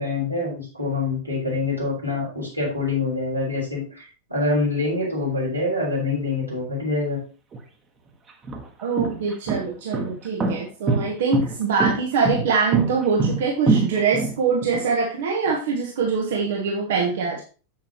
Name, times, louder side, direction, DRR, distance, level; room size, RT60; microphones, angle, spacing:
voice 1, 0.0-4.0 4.3-7.2, left 3 dB, 85° right, -5 dB, 4.3 m, -25 dB
sound 1, 7.5-7.6 8.3-14.8, right 4 dB, 25° right, 1.4 m, -24 dB
voice 2, 8.8-17.4, right 5 dB, 60° right, 0 dB, 1.3 m, -23 dB
7.8 x 7.3 x 3.0 m, 0.36 s
figure-of-eight pair, 90°, 0 cm